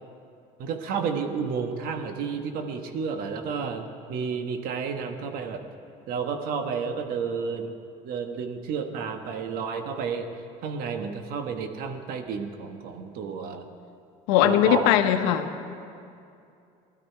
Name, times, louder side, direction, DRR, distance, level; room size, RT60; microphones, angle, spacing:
voice 1, 0.6-5.6 6.1-7.7 8.0-10.3 10.6-13.7 14.4-15.0, right 6 dB, 65° right, 6 dB, 1.3 m, -31 dB
voice 2, 14.3-15.5, left 10 dB, 85° left, 8 dB, 0.9 m, -20 dB
16.5 x 12.5 x 4.6 m, 2.5 s
cardioid pair, 115°, 16 cm